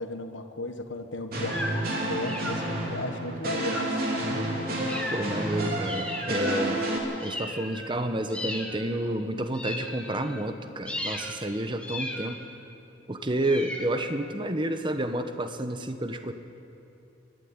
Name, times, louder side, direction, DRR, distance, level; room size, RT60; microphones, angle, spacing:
voice 1, 0.0-1.6 2.1-4.0, left 2 dB, 75° left, 7 dB, 1.4 m, -35 dB
sound 1, 1.3-7.0, right 1 dB, 50° right, 3.3 m, -30 dB
sound 2, 1.5-1.9 2.2-2.9 3.6-4.1 4.9-5.5 5.8-6.7 7.2-8.0 8.3-9.0 9.5-10.4 10.9-11.4 11.8-12.6 13.4-14.3, left 1 dB, 5° left, 1.6 m, -36 dB
voice 2, 5.1-6.9 7.2-12.4 13.1-16.3, right 1 dB, 25° right, 8 dB, 1.0 m, -30 dB
22.5 x 12.0 x 9.6 m, 2.7 s
head